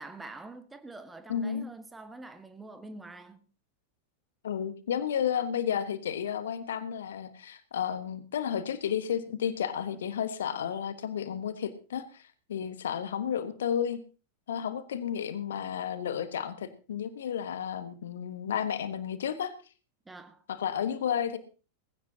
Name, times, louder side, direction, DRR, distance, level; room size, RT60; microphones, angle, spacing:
voice 1, 0.0-3.4 20.0-20.4, right 2 dB, 10° right, 1.5 m, -45 dB
voice 2, 1.3-1.7 4.4-14.0 14.5-19.5 20.5-21.4, left 8 dB, 60° left, 1.4 m, -32 dB
19.5 x 16.0 x 2.9 m
figure-of-eight pair, 90°, 0 cm